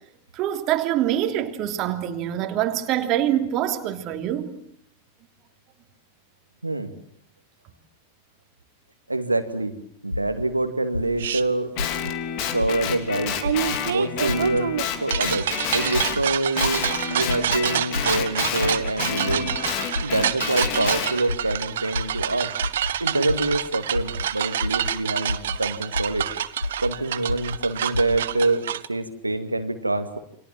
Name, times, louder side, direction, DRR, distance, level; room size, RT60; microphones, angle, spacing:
voice 1, 0.3-4.5, right 11 dB, 40° right, 3.1 m, -25 dB
voice 2, 9.1-9.7 10.0-11.9 12.5-13.4 13.8-15.5 15.7-19.5 20.0-22.5 23.0-26.3 26.8-30.2, right 2 dB, 85° right, 2.4 m, -26 dB
sound 1, 10.1-10.5 10.9-11.3 11.8-12.1 12.6-12.9 13.4-13.8 14.3-14.6 15.1-15.5 15.9-16.2 16.6-16.9 17.3-17.6 17.9-18.2 18.6-18.9 19.3-19.6 19.9-20.2 20.6-20.9 21.3-21.6 21.9-22.2 22.6-22.9 23.3-23.6 23.9-24.2 24.6-24.9 25.3-25.6 25.9-26.2 26.6-26.9 27.3-27.6 27.9-28.2, left 1 dB, 85° left, 1.2 m, -29 dB
sound 2, 11.2-11.4 13.4-28.9, right 10 dB, 60° right, 1.3 m, -28 dB
Guitar, 11.8-16.2 16.6-21.1, left 8 dB, 45° left, 3.5 m, -29 dB
29.0 x 26.0 x 7.5 m
figure-of-eight pair, 90°, 0 cm